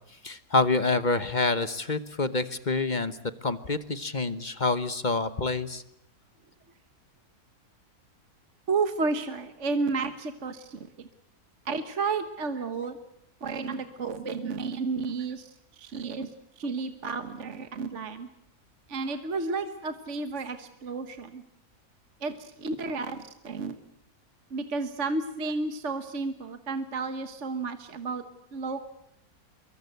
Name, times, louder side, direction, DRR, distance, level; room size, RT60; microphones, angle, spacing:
voice 1, 0.2-3.2 3.4-5.8, left 3 dB, 35° left, 12 dB, 1.1 m, -27 dB
voice 2, 8.7-11.1 11.6-13.0 13.4-16.3 16.6-18.3 18.9-21.4 22.2-23.2 23.4-23.7 24.5-28.2 28.5-28.8, right 4 dB, 50° right, 9 dB, 1.5 m, -32 dB
25.5 x 23.0 x 8.0 m, 0.78 s
omnidirectional pair, 1.6 m